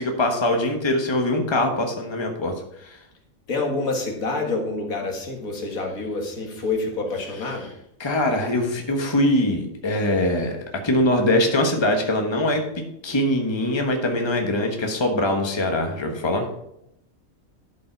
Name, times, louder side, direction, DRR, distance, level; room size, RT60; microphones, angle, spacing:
voice 1, 0.0-2.5 2.8-3.0 8.0-16.5, left 1 dB, 20° left, 3 dB, 1.3 m, -22 dB
voice 2, 3.5-7.7, left 3 dB, 85° left, 2 dB, 2.2 m, -27 dB
12.0 x 5.4 x 4.5 m, 0.80 s
omnidirectional pair, 1.4 m